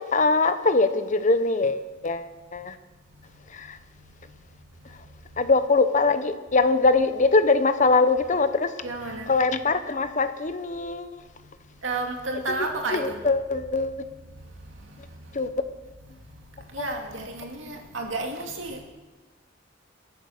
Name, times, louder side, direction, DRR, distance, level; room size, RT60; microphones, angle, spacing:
voice 1, 0.0-2.7 3.5-3.8 5.4-8.7 9.3-11.2 12.5-14.0 15.3-15.5 16.8-16.9, left 3 dB, 40° left, 0.9 m, -23 dB
voice 2, 8.8-9.3 11.8-13.2 16.7-18.8, right 2 dB, 80° right, 2.3 m, -31 dB
22.5 x 8.1 x 6.5 m
head